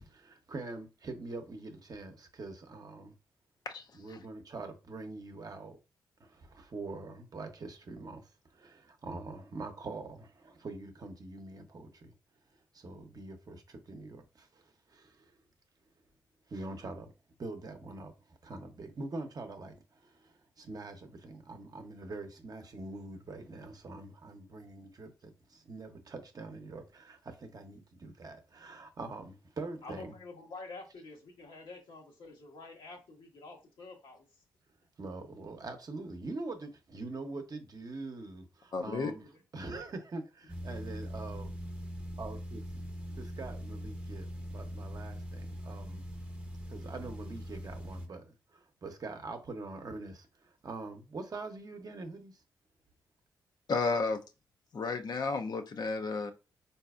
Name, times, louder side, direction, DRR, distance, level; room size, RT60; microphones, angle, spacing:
voice 1, 0.0-3.1 3.9-5.8 6.2-12.1 12.7-15.4 16.5-17.1 17.4-30.1 35.0-39.2 39.5-41.6 42.2-42.6 43.4-46.0 46.7-52.4, right 3 dB, 45° right, 0.8 m, -44 dB
voice 2, 29.8-34.4 39.3-39.4, left 3 dB, 75° left, 1.1 m, -48 dB
voice 3, 38.7-39.1 53.7-54.2 54.7-56.3, left 4 dB, 55° left, 0.5 m, -32 dB
sound 1, 40.5-48.1, equal, 15° right, 0.7 m, -41 dB
3.9 x 2.7 x 2.3 m
supercardioid pair, 45°, 9 cm